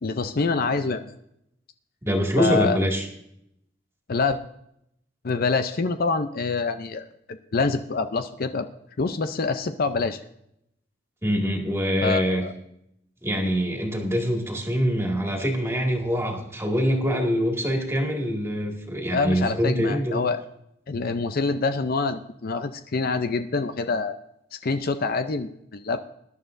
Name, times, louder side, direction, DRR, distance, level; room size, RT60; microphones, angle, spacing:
voice 1, 0.0-1.1 2.4-2.8 4.1-4.4 5.2-8.7 9.0-10.2 12.0-12.5 13.4-13.5 19.1-20.4 20.9-24.2 24.5-26.0, left 4 dB, 55° left, 9 dB, 0.6 m, -26 dB
voice 2, 2.0-3.0 11.2-12.4 13.2-20.2, equal, 15° right, 1 dB, 2.0 m, -24 dB
20.5 x 11.0 x 2.6 m, 0.76 s
head